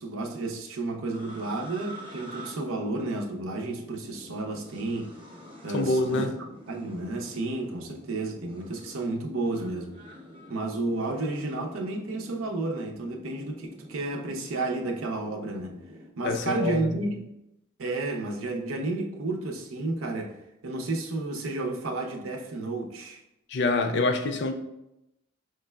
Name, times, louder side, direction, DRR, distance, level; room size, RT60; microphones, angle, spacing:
voice 1, 0.0-5.1 5.6-6.3 6.7-9.9 10.5-15.8 16.2-17.3 17.8-20.4 20.6-23.2, right 2 dB, 85° right, 0.6 m, -31 dB
sound 1, 1.1-16.1, equal, 25° right, 0.7 m, -47 dB
voice 2, 5.7-6.3 16.2-16.8 23.5-24.5, left 3 dB, 60° left, 0.4 m, -25 dB
5.1 x 3.2 x 2.2 m
head